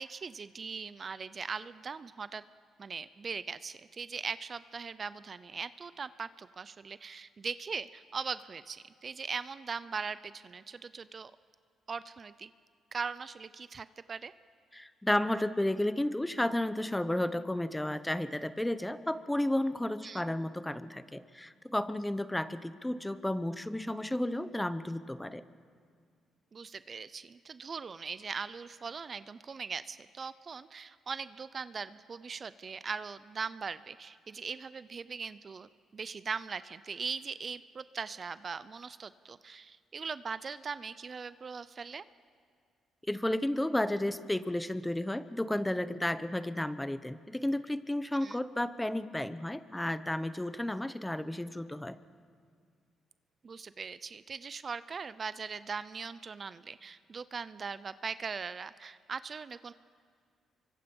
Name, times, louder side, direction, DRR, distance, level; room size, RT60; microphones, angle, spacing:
voice 1, 0.0-2.4 2.8-11.3 11.9-12.5 12.9-14.3 20.0-20.2 26.5-42.0 48.2-48.4 53.4-59.7, right 5 dB, 40° right, 15 dB, 0.5 m, -40 dB
voice 2, 14.7-25.4 43.1-52.0, left 1 dB, 10° left, 14 dB, 0.8 m, -32 dB
26.5 x 24.0 x 5.4 m, 2.1 s
cardioid pair, 90°, 0 cm